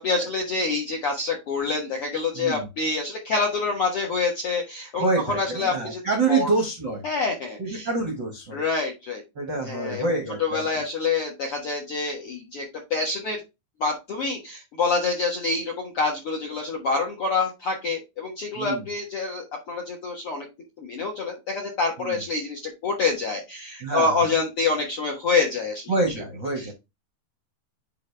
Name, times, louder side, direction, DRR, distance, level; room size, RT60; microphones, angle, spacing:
voice 1, 0.0-6.0 6.3-6.5 7.0-7.9 8.5-9.2 9.6-10.0 10.4-13.4 13.8-20.5 20.8-25.9 26.6-26.7, left 4 dB, 65° left, 1 dB, 1.4 m, -26 dB
voice 2, 2.3-2.7 5.0-7.0 7.6-8.6 9.3-10.6 18.5-18.9 22.0-22.2 23.8-24.3 25.9-26.7, right 3 dB, 70° right, 3 dB, 1.0 m, -27 dB
9.8 x 3.9 x 3.3 m, 0.23 s
omnidirectional pair, 4.6 m